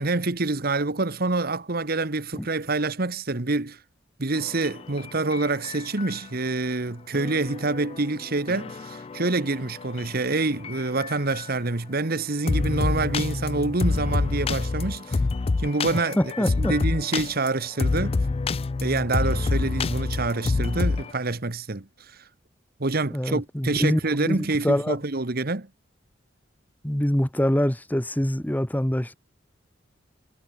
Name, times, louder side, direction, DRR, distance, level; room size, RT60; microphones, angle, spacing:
voice 1, 0.0-3.8 4.2-15.2 15.6-16.2 16.5-18.2 18.8-21.8 22.8-25.7, right 3 dB, 50° right, 1.3 m, -26 dB
sound 1, 4.4-6.2 7.1-11.5 12.5-21.1, left 3 dB, 30° left, 0.4 m, -28 dB
voice 2, 15.9-16.7 23.1-25.0 26.8-29.1, equal, 10° left, 1.0 m, -25 dB
head